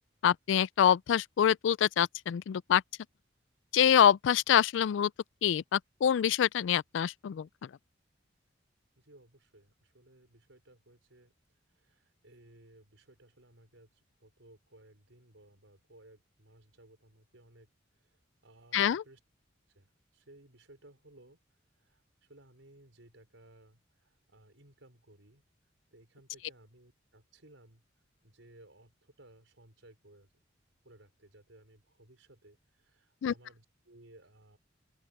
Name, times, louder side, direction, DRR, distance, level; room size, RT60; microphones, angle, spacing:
voice 1, 0.2-2.8 3.7-5.1 5.4-7.7 18.7-19.0 33.2-33.3, left 9 dB, 75° left, 0.3 m, -26 dB
voice 2, 8.9-11.3 11.7-17.7 18.1-19.2 19.7-25.4 25.9-30.3 30.8-34.6, right 1 dB, 85° right, 5.1 m, -59 dB
open air
head